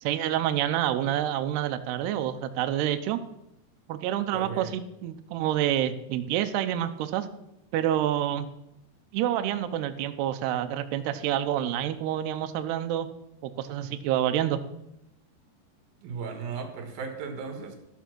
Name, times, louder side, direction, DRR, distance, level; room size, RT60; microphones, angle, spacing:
voice 1, 0.0-3.2 3.9-7.3 7.7-8.5 9.1-13.1 13.4-14.6, right 11 dB, 80° right, 9 dB, 2.8 m, -28 dB
voice 2, 4.3-4.7 16.0-17.8, right 5 dB, 65° right, 6 dB, 3.2 m, -36 dB
14.0 x 7.0 x 6.0 m, 0.84 s
omnidirectional pair, 4.7 m